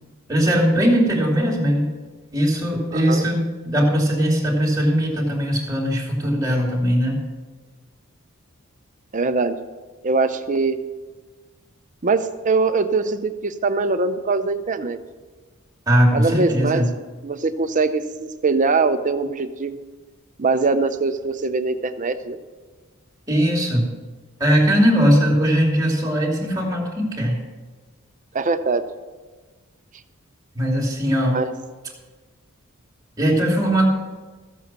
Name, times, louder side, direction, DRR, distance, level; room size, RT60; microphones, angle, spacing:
voice 1, 0.3-1.9 2.3-7.2 15.9-16.9 23.3-23.9 24.4-27.4 30.5-31.4 33.2-33.9, equal, 15° right, -2 dB, 2.6 m, -19 dB
voice 2, 2.9-3.2 9.1-9.6 10.0-10.8 12.0-15.0 16.1-16.9 17.2-19.8 20.4-22.4 28.3-28.8 31.3-31.5, right 3 dB, 35° right, 10 dB, 0.6 m, -22 dB
14.5 x 7.8 x 6.0 m, 1.3 s
head